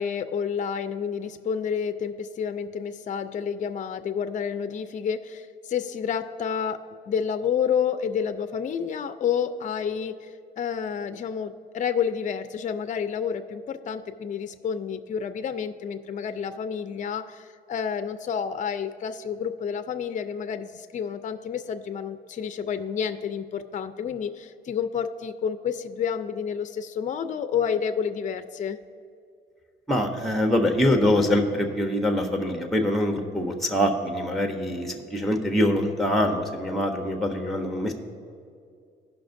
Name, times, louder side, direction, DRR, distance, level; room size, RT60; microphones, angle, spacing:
voice 1, 0.0-28.8, left 7 dB, 40° left, 9 dB, 0.5 m, -29 dB
voice 2, 29.9-37.9, left 1 dB, ahead, 4 dB, 0.9 m, -24 dB
17.0 x 5.7 x 2.6 m, 2.3 s
cardioid pair, 90°, 20 cm